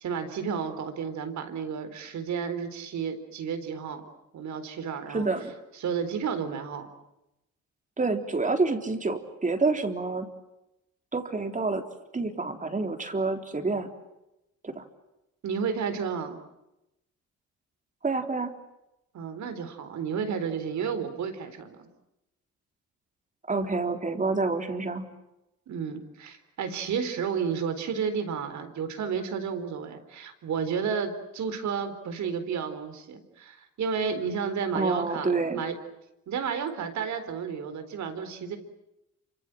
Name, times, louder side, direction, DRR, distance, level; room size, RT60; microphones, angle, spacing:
voice 1, 0.0-4.0 4.3-5.3 5.7-6.9 15.4-16.4 19.1-21.9 25.7-35.7 36.3-38.6, right 6 dB, 70° right, 9 dB, 4.2 m, -32 dB
voice 2, 5.1-5.5 8.0-10.3 11.1-11.8 12.1-13.9 14.6-14.8 18.0-18.6 23.5-25.1 34.7-35.6, right 3 dB, 25° right, 6 dB, 3.8 m, -28 dB
28.5 x 26.0 x 7.8 m, 0.90 s
cardioid pair, 90°, 30 cm